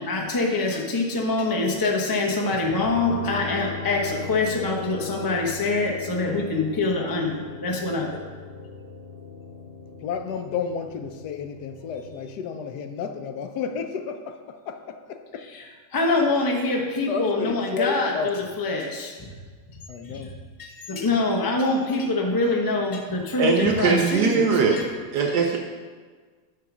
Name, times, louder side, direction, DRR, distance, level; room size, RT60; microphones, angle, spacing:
voice 1, 0.0-8.2 15.5-15.7 15.9-19.3 19.7-19.8 20.0-20.3 20.6-24.8, left 2 dB, 30° left, 0 dB, 0.4 m, -25 dB
sound 1, 2.8-12.3, left 5 dB, 45° left, 0.8 m, -39 dB
voice 2, 10.0-15.5 17.1-18.5 19.9-20.3 21.0-21.2, left 6 dB, 70° left, 7 dB, 1.1 m, -31 dB
voice 3, 23.4-24.8 25.1-25.6, right 5 dB, 70° right, 1 dB, 1.2 m, -21 dB
9.3 x 3.7 x 6.0 m, 1.5 s
omnidirectional pair, 1.9 m